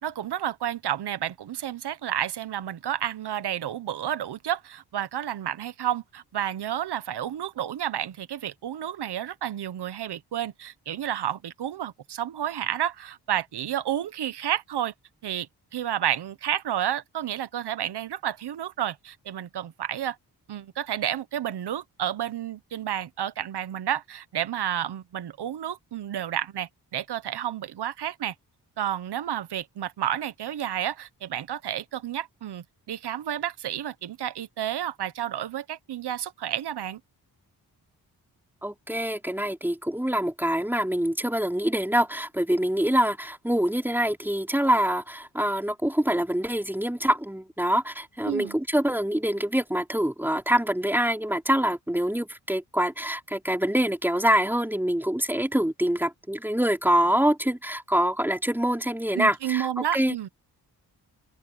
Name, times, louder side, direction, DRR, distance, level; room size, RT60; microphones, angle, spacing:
voice 1, 0.0-14.9 15.2-20.2 20.5-28.3 28.8-37.0 48.2-48.6 59.1-60.3, right 11 dB, 75° right, 1.3 m, -31 dB
voice 2, 38.6-60.1, right 1 dB, 5° right, 4.0 m, -25 dB
open air
cardioid pair, 60°, 40 cm